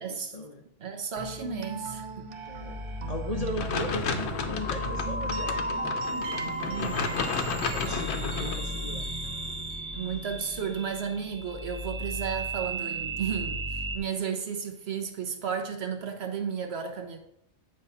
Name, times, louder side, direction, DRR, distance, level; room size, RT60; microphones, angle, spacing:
voice 1, 0.0-0.6 2.4-2.8 3.1-6.7 7.7-9.1, left 2 dB, 40° left, 2 dB, 0.6 m, -38 dB
voice 2, 0.8-2.2 6.3-7.3 9.9-17.2, right 7 dB, 65° right, 5 dB, 1.1 m, -33 dB
sound 1, 1.2-10.9, right 6 dB, 85° right, 1.0 m, -41 dB
sound 2, 2.3-14.0, right 1 dB, 30° right, 0.7 m, -35 dB
sound 3, 3.6-8.6, left 5 dB, 70° left, 0.9 m, -32 dB
8.0 x 3.3 x 5.5 m, 0.75 s
omnidirectional pair, 1.2 m